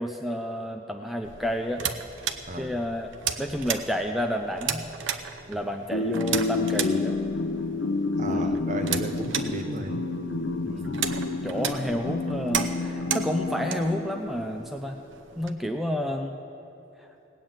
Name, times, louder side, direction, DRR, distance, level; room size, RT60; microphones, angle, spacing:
voice 1, 0.0-1.8 2.5-3.1 3.4-4.8 5.5-7.1 8.3-8.6 10.7-11.0 11.4-15.0 15.4-16.4, equal, ahead, 3 dB, 0.5 m, -30 dB
sound 1, 1.2-15.5, right 8 dB, 75° right, 0.8 m, -35 dB
sound 2, 5.9-14.7, left 3 dB, 70° left, 0.7 m, -29 dB
voice 2, 8.2-10.0, right 1 dB, 40° right, 6 dB, 0.9 m, -34 dB
18.5 x 7.5 x 8.9 m, 3.0 s
head